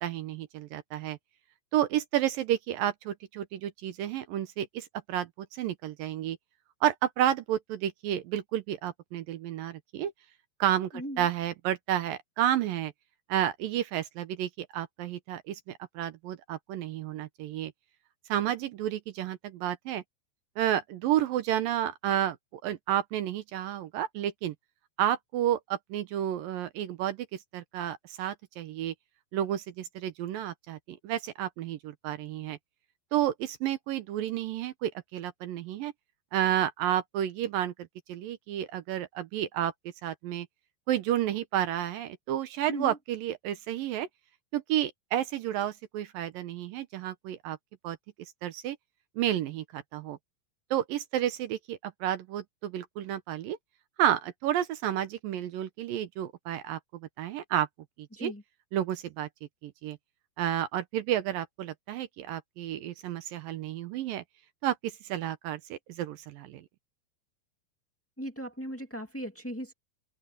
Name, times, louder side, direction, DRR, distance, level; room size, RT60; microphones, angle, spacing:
voice 1, 0.0-1.2 1.7-6.4 6.8-10.1 10.6-12.9 13.3-17.7 18.3-20.0 20.6-22.4 22.6-24.5 25.0-28.9 29.3-32.6 33.1-35.9 36.3-39.7 40.0-40.5 40.9-44.1 44.5-47.6 47.8-48.0 48.4-48.8 49.2-50.2 50.7-53.6 54.0-57.7 58.0-58.3 58.7-59.3 59.6-60.0 60.4-64.2 64.6-66.7, right 11 dB, 70° right, 2.4 m, -31 dB
voice 2, 10.9-11.3 42.7-43.0 58.1-58.4 68.2-69.7, equal, 10° left, 0.6 m, -37 dB
open air
omnidirectional pair, 4.6 m